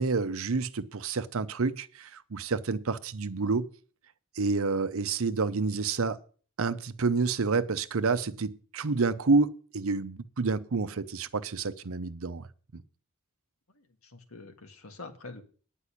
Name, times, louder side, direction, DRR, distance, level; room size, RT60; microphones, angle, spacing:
voice 1, 0.0-3.7 4.4-6.2 6.6-12.5 12.7-12.8, right 4 dB, 70° right, 0.7 m, -29 dB
voice 2, 13.7-15.4, left 3 dB, 75° left, 1.6 m, -46 dB
10.0 x 5.4 x 8.3 m
head